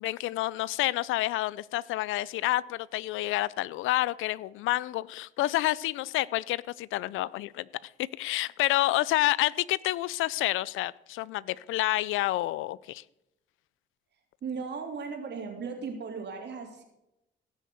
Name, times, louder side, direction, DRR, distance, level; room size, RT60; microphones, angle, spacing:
voice 1, 0.0-7.7 8.2-13.0, left 16 dB, 90° left, 0.4 m, -29 dB
voice 2, 14.4-16.8, right 5 dB, 60° right, 3.0 m, -36 dB
17.0 x 6.5 x 6.8 m
cardioid pair, 90°, 20 cm